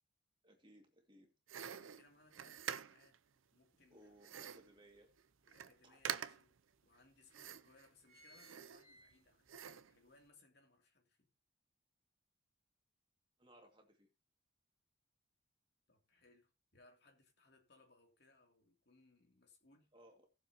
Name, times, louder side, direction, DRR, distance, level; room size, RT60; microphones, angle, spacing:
voice 1, 0.4-1.3 3.9-5.1 5.8-6.0 13.4-14.1 19.9-20.3, right 1 dB, 25° right, 2.2 m, -63 dB
sound 1, 1.5-3.2 4.2-4.7 5.2-5.3 5.5-5.7 6.0-6.6 7.3-7.9 8.3-9.1 9.5-9.9, right 9 dB, 80° right, 0.6 m, -46 dB
voice 2, 1.7-3.2 3.5-4.1 5.4-6.5 6.8-9.5 9.9-11.3 15.9-19.9, left 2 dB, 55° left, 2.9 m, -69 dB
sound 2, 3.8-3.9 4.4-5.5 6.2-6.3 6.5-6.6 7.3-7.5 7.8-9.6 10.0-10.1, equal, 25° left, 6.6 m, -65 dB
18.5 x 7.3 x 2.9 m
head